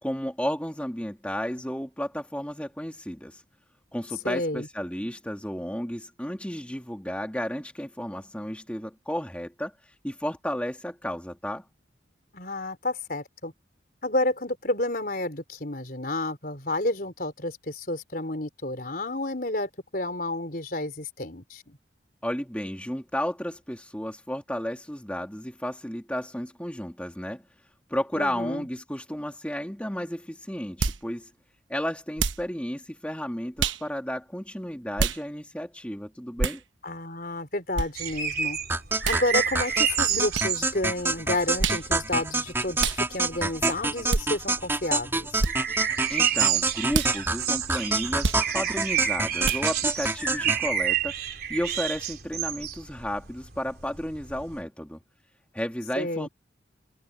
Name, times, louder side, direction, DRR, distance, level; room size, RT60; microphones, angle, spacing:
voice 1, 0.0-3.4 3.9-11.6 22.2-27.4 27.9-31.3 31.7-36.6 46.1-51.1 51.5-55.0 55.5-56.3, equal, 5° left, 2.5 m, -33 dB
voice 2, 4.2-4.7 12.3-13.5 14.0-21.8 28.1-28.7 36.8-38.6 39.1-45.3 56.0-56.3, left 2 dB, 50° left, 4.6 m, -30 dB
sound 1, 30.8-31.0 32.2-32.5 33.6-33.8 35.0-35.2 36.4-36.6 37.7-37.9 39.0-39.2 40.3-40.5 41.6-41.8 42.8-43.0 44.1-44.3 45.4-45.5 46.9-47.1 48.2-48.4 49.4-49.6, right 4 dB, 90° right, 1.1 m, -26 dB
sound 2, 37.9-54.6, right 9 dB, 55° right, 4.1 m, -30 dB
sound 3, 38.7-50.7, right 2 dB, 15° right, 3.3 m, -28 dB
head